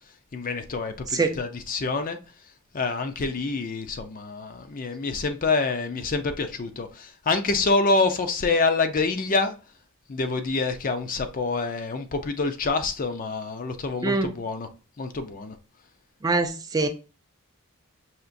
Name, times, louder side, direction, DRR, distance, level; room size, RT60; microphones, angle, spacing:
voice 1, 0.3-2.2 2.7-9.5 10.1-14.7 15.0-15.6, left 3 dB, 40° left, 0.5 m, -26 dB
voice 2, 16.2-16.9, right 3 dB, 15° right, 0.4 m, -23 dB
5.7 x 2.9 x 2.5 m
head